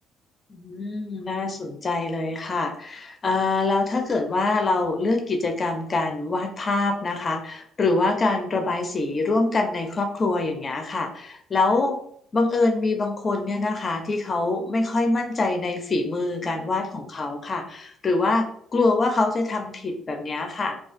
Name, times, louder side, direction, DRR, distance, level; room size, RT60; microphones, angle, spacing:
voice 1, 0.5-12.0 12.3-20.8, left 3 dB, 35° left, 5 dB, 0.4 m, -25 dB
2.4 x 2.3 x 2.4 m, 0.66 s
supercardioid pair, 70°, 0 cm